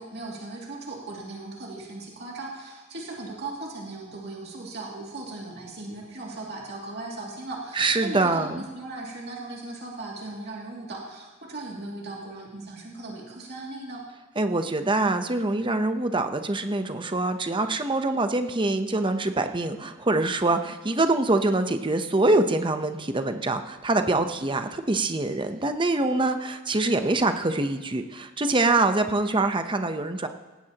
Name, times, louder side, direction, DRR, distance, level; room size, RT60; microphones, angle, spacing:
voice 1, 0.0-14.0, right 2 dB, 50° right, -3 dB, 2.5 m, -38 dB
voice 2, 7.8-8.6 14.4-30.3, right 2 dB, 25° right, 7 dB, 0.8 m, -24 dB
18.5 x 16.5 x 3.0 m, 1.3 s
head